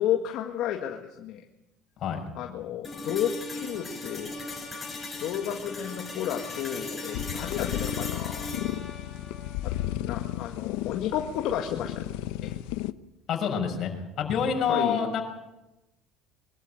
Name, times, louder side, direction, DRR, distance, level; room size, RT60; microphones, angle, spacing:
voice 1, 0.0-1.4 2.3-4.3 5.2-8.6 9.6-9.7 10.0-12.0 12.4-12.6 14.7-15.0, left 10 dB, 65° left, 3 dB, 1.8 m, -32 dB
voice 2, 2.0-2.3 13.3-13.9 14.2-15.2, left 7 dB, 50° left, 3 dB, 6.0 m, -27 dB
sound 1, 2.8-10.9, left 2 dB, 15° left, 7.4 m, -38 dB
sound 2, 7.1-12.9, left 15 dB, 85° left, 0.7 m, -33 dB
23.5 x 13.0 x 9.1 m, 0.97 s
cardioid pair, 120°, 0 cm